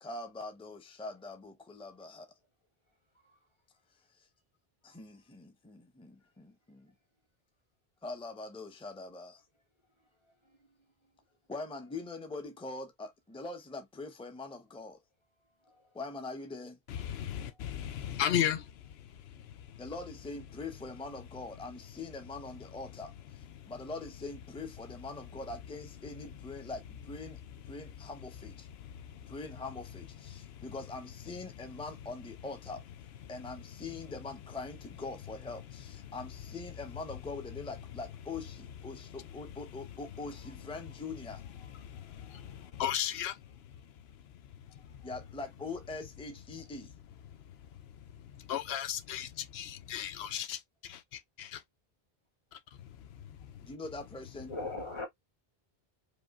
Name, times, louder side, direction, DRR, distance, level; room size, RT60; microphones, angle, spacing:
voice 1, 0.0-2.3 4.8-6.9 8.0-9.4 11.5-15.0 15.9-16.8 19.8-27.4 27.6-28.7 29.3-32.8 33.3-41.4 45.0-46.9 53.6-54.5, left 3 dB, 5° left, 0.7 m, -43 dB
voice 2, 16.9-19.8 23.5-23.7 28.8-29.3 30.3-30.7 36.0-36.1 38.9-39.1 41.6-43.6 44.7-45.0 48.1-51.6 52.5-53.7, left 10 dB, 90° left, 0.8 m, -37 dB
voice 3, 17.6-18.0 41.9-42.8 54.4-55.1, left 2 dB, 30° left, 1.4 m, -43 dB
5.1 x 3.1 x 2.4 m
omnidirectional pair, 1.0 m